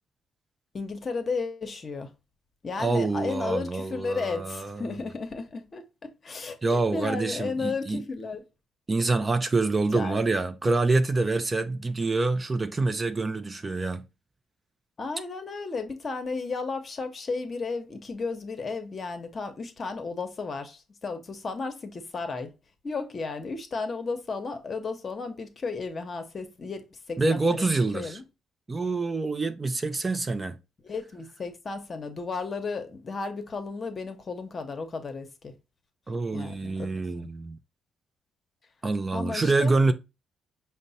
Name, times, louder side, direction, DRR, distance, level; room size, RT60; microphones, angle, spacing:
voice 1, 0.7-2.1 2.6-8.4 9.9-10.2 15.0-22.5 22.8-28.2 30.8-35.5 36.3-37.3 39.1-39.7, left 4 dB, 40° left, 0.9 m, -34 dB
voice 2, 2.8-4.9 6.6-8.0 8.9-14.1 27.2-28.2 28.7-30.6 36.1-37.6 38.8-39.9, right 3 dB, 25° right, 0.4 m, -26 dB
5.2 x 2.1 x 4.0 m
cardioid pair, 90°, 0 cm